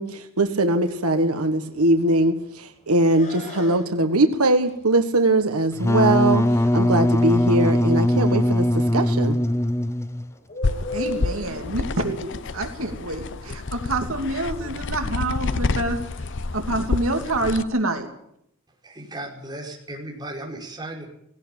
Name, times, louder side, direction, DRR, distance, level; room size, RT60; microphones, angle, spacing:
voice 1, 0.0-9.4, right 2 dB, 90° right, 7 dB, 1.6 m, -21 dB
Bird, 0.6-13.6, left 1 dB, 35° left, 4.6 m, -39 dB
Wind instrument woodwind instrument, 5.8-10.3, left 1 dB, 15° left, 0.7 m, -20 dB
sound 1, 10.6-17.6, left 3 dB, 55° left, 0.7 m, -29 dB
voice 2, 10.9-16.3 16.5-18.1, right 2 dB, 70° right, 4 dB, 2.9 m, -27 dB
voice 3, 18.8-21.1, right 1 dB, 20° right, -1 dB, 5.4 m, -36 dB
18.0 x 17.5 x 9.0 m, 0.76 s
head